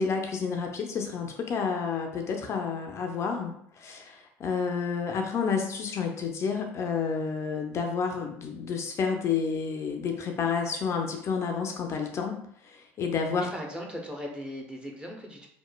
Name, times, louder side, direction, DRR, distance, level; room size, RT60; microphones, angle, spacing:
voice 1, 0.0-13.5, left 5 dB, 45° left, 3 dB, 0.4 m, -30 dB
voice 2, 13.3-15.5, equal, 15° right, 0 dB, 0.7 m, -38 dB
3.0 x 2.1 x 2.2 m, 0.68 s
hypercardioid pair, 70°, 7 cm